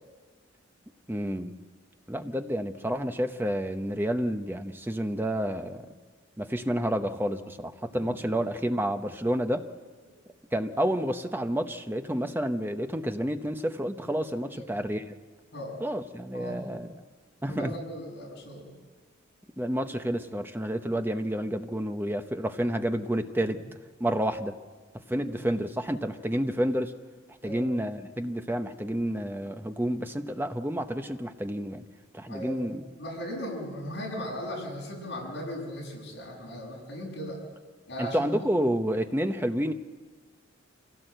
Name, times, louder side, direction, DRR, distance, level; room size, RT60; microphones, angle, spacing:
voice 1, 1.1-1.5 2.1-5.8 6.4-9.7 10.5-15.1 15.8-16.9 17.4-17.7 19.6-23.6 24.0-24.5 25.1-26.9 27.4-31.8 32.1-32.8 38.0-39.7, equal, 10° right, 7 dB, 0.9 m, -29 dB
voice 2, 14.5-14.8 15.5-15.8 16.3-16.6 17.4-18.7 25.2-25.3 27.4-27.6 32.3-37.4 37.9-38.3, equal, 55° left, -3 dB, 7.2 m, -37 dB
25.5 x 17.0 x 7.9 m, 1.4 s
head